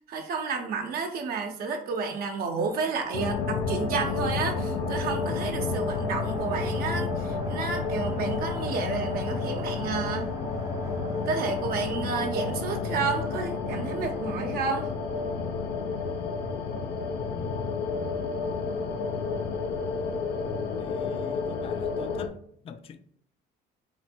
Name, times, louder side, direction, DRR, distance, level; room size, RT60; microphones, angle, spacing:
voice 1, 0.1-10.3 11.3-14.9, right 5 dB, 65° right, 0.8 m, -31 dB
sound 1, 2.6-18.4, right 2 dB, 20° right, 0.5 m, -45 dB
sound 2, 3.1-22.3, left 4 dB, 85° left, 0.6 m, -30 dB
voice 2, 17.4-18.0 20.8-22.4 22.6-23.0, left 7 dB, 35° left, 0.4 m, -45 dB
4.4 x 2.1 x 4.4 m
cardioid pair, 110°, 17 cm